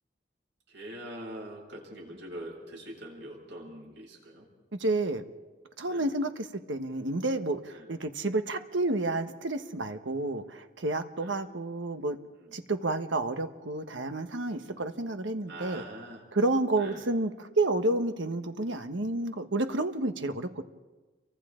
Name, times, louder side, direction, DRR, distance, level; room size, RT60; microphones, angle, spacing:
voice 1, 0.7-4.5 5.9-6.1 7.7-7.9 11.2-11.3 12.3-12.5 14.5-14.8 15.5-16.2 16.7-17.0, right 1 dB, 70° right, -2 dB, 7.7 m, -43 dB
voice 2, 4.8-5.2 5.8-12.2 12.5-15.8 16.3-20.6, right 2 dB, 90° right, 8 dB, 1.3 m, -30 dB
30.0 x 24.0 x 3.8 m, 1.2 s
head